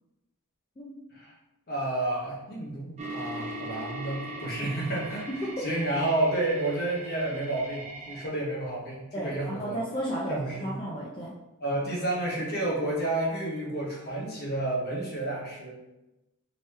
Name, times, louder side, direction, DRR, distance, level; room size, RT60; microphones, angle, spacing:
voice 1, 1.7-9.8 10.3-10.8 11.6-15.7, right 1 dB, 50° left, -4 dB, 1.0 m, -30 dB
sound 1, 3.0-8.3, right 1 dB, 35° right, 0.5 m, -40 dB
voice 2, 9.1-11.3, right 1 dB, 25° left, -4 dB, 0.5 m, -33 dB
3.4 x 2.9 x 3.2 m, 0.98 s
head